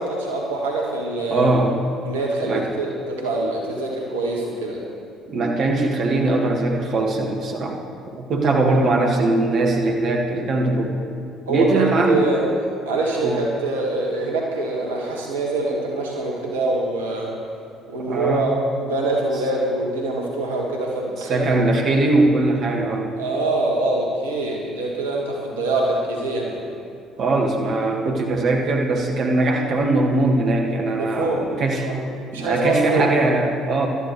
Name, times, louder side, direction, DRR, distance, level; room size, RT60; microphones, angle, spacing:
voice 1, 0.0-1.5 2.0-4.9 11.5-12.4 12.8-17.3 17.9-18.5 18.8-21.5 23.2-26.7 31.0-31.4 31.8-32.0 32.3-33.0, right 2 dB, 80° right, -2 dB, 1.6 m, -24 dB
voice 2, 1.3-1.8 2.4-2.7 5.3-7.8 8.1-11.0 11.5-12.4 13.2-13.5 18.0-18.7 19.3-19.4 21.2-23.1 27.2-31.9 32.3-33.9, right 2 dB, 50° right, 0 dB, 1.7 m, -21 dB
19.5 x 12.5 x 3.2 m, 2.5 s
figure-of-eight pair, 55°, 0 cm